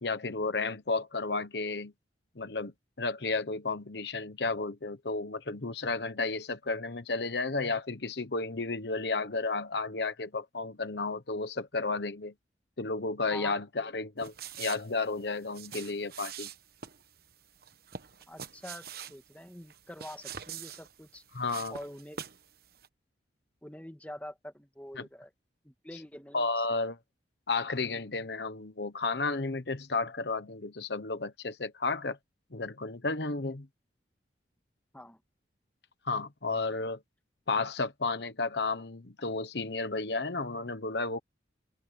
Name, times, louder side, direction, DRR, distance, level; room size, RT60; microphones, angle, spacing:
voice 1, 0.0-1.9 2.4-12.3 12.8-16.5 21.3-21.7 25.0-25.1 26.3-27.0 27.5-32.2 32.5-33.7 36.0-37.0 37.5-41.2, left 3 dB, 65° left, 1.1 m, -32 dB
sound 1, 14.2-22.5 22.7-22.9, right 8 dB, 55° right, 1.2 m, -45 dB
voice 2, 18.3-21.2 21.7-22.2 23.6-25.3 25.6-26.5 34.9-35.2, left 1 dB, 10° left, 2.0 m, -45 dB
open air
head